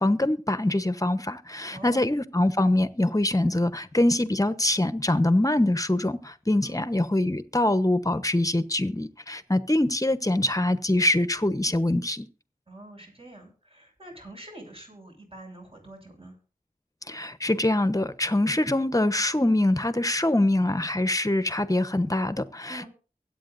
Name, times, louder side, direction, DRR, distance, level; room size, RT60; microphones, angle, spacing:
voice 1, 0.0-12.3 17.1-22.9, left 1 dB, 25° left, 1.0 m, -24 dB
voice 2, 1.7-2.1 6.6-6.9 12.7-16.4 22.7-22.9, right 1 dB, 40° right, 6.9 m, -45 dB
23.5 x 8.7 x 2.6 m
wide cardioid pair, 45°, 15 cm